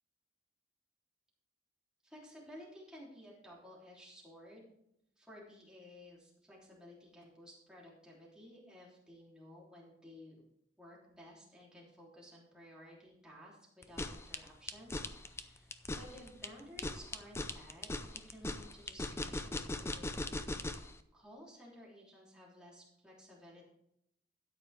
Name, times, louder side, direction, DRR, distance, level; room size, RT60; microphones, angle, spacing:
voice 1, 2.0-4.7 5.2-10.4 10.8-17.9 18.3-20.2 21.1-23.7, equal, 5° right, -5 dB, 3.3 m, -55 dB
sound 1, 13.8-20.9, left 2 dB, 15° left, 0.5 m, -39 dB
13.0 x 9.4 x 3.5 m, 0.78 s
head